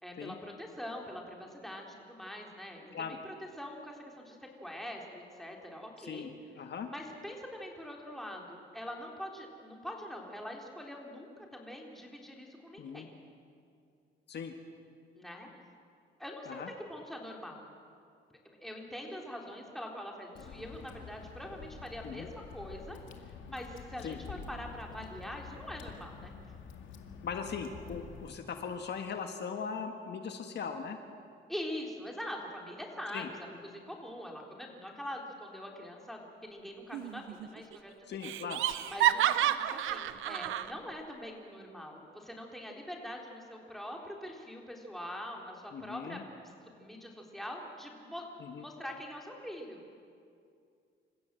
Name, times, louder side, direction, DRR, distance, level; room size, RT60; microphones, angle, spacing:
voice 1, 0.0-6.3 6.9-13.2 15.2-15.5 16.2-16.6 16.9-17.6 18.3-22.3 22.5-26.3 31.5-38.2 38.9-50.0, equal, ahead, 0 dB, 3.9 m, -44 dB
voice 2, 6.0-6.3 6.6-6.9 12.8-13.1 14.3-14.5 16.5-16.7 22.0-22.3 24.0-24.2 27.2-31.0 33.1-33.3 38.1-38.6 45.7-46.2 48.4-48.6, left 6 dB, 60° left, 6 dB, 1.5 m, -39 dB
Water / Drip, 20.3-28.3, left 6 dB, 75° left, 2.1 m, -48 dB
Laughter, 36.9-37.5 37.7-37.8 38.2-40.7, right 12 dB, 85° right, 0.8 m, -30 dB
27.5 x 15.5 x 7.8 m, 2.4 s
cardioid pair, 90°, 20 cm